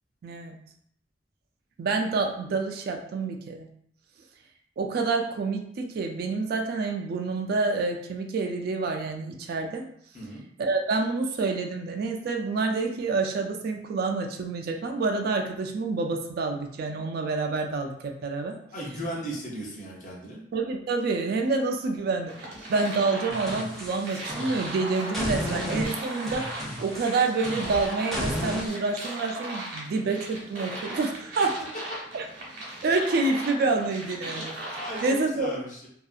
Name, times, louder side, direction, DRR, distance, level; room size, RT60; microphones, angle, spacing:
voice 1, 0.2-0.6 1.8-3.7 4.8-9.9 10.6-18.6 20.5-31.6 32.1-32.2 32.8-35.6, right 3 dB, 60° right, 4 dB, 0.3 m, -28 dB
voice 2, 18.7-20.4 34.8-35.9, right 1 dB, 45° left, -4 dB, 0.8 m, -36 dB
sound 1, 22.3-35.2, right 1 dB, 80° right, 1.0 m, -38 dB
sound 2, 23.3-24.7 25.1-28.7, equal, ahead, 0.5 m, -33 dB
2.7 x 2.3 x 2.3 m, 0.68 s
head